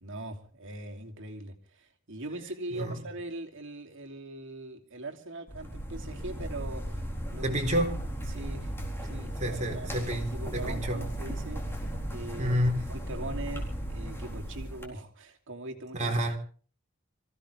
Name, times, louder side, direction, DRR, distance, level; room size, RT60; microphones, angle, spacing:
voice 1, 0.0-7.0 7.3-7.6 8.3-8.7 9.0-11.8 12.1-12.6 12.9-16.1, right 2 dB, 65° right, 2.8 m, -41 dB
voice 2, 2.7-3.0 7.4-8.0 9.4-11.0 12.4-12.9 15.9-16.4, equal, 35° right, 3.9 m, -29 dB
sound 1, 5.5-14.8, equal, 10° left, 4.0 m, -36 dB
25.5 x 15.5 x 3.4 m
head